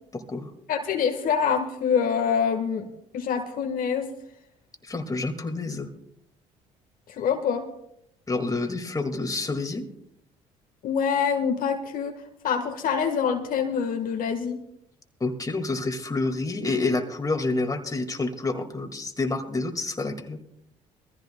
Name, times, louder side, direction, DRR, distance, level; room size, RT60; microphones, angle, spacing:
voice 1, 0.1-0.5 4.8-5.9 8.3-9.8 15.2-20.4, left 3 dB, 20° left, 4 dB, 2.0 m, -28 dB
voice 2, 0.7-2.8 3.1-4.1 7.1-7.7 10.8-14.6, left 7 dB, 60° left, 4 dB, 1.4 m, -25 dB
22.5 x 14.5 x 2.2 m, 0.73 s
supercardioid pair, 65°, 16 cm